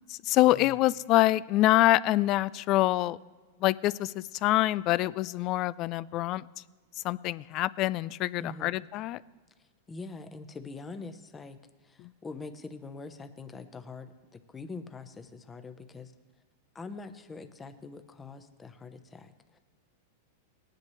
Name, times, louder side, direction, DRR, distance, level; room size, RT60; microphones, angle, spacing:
voice 1, 0.1-3.2 3.6-6.4 7.0-9.2 12.0-12.1, left 16 dB, 40° left, 19 dB, 0.3 m, -25 dB
voice 2, 8.4-8.7 9.9-11.6 11.8-16.1 16.7-19.6, left 4 dB, 15° left, 8 dB, 0.9 m, -43 dB
18.5 x 10.5 x 3.2 m, 1.4 s
hypercardioid pair, 125°, 0 cm